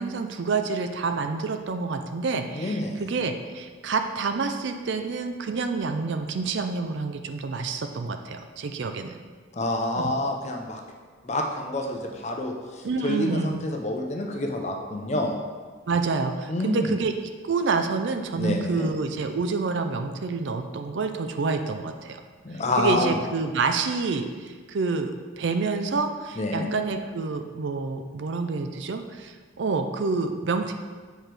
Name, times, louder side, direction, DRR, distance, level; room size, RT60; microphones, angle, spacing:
voice 1, 0.0-9.2 10.0-10.1 12.8-13.6 15.9-17.1 17.4-22.2 22.8-30.7, right 4 dB, 60° right, 7 dB, 0.4 m, -28 dB
voice 2, 2.5-3.0 9.5-10.8 11.2-15.4 16.5-16.9 18.4-18.9 22.4-23.2 26.4-26.7, left 1 dB, 35° left, 2 dB, 0.6 m, -28 dB
7.9 x 4.5 x 3.3 m, 1.5 s
head